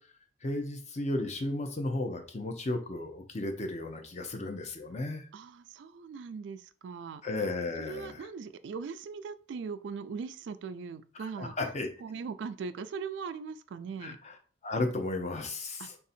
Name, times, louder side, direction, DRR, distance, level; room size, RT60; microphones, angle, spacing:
voice 1, 0.4-5.3 7.2-8.3 11.2-11.9 14.0-14.3 14.6-16.0, left 2 dB, 35° left, 6 dB, 0.6 m, -34 dB
voice 2, 5.3-7.2 7.8-11.5 12.0-14.2 15.8-15.9, right 5 dB, 65° right, 13 dB, 0.3 m, -40 dB
3.4 x 2.7 x 4.1 m, 0.42 s
head